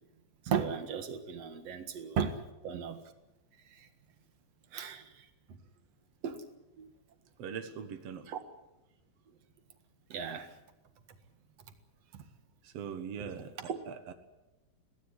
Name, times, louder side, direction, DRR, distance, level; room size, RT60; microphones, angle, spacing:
voice 1, 0.5-2.4 2.6-3.0 4.7-5.0 6.2-6.4 6.8-6.9 8.3-8.4 10.1-10.5 13.6-13.8, right 7 dB, 50° right, 2.0 m, -35 dB
voice 2, 7.4-8.3 12.6-14.1, right 7 dB, 80° right, 1.4 m, -41 dB
22.5 x 17.0 x 9.9 m
omnidirectional pair, 5.1 m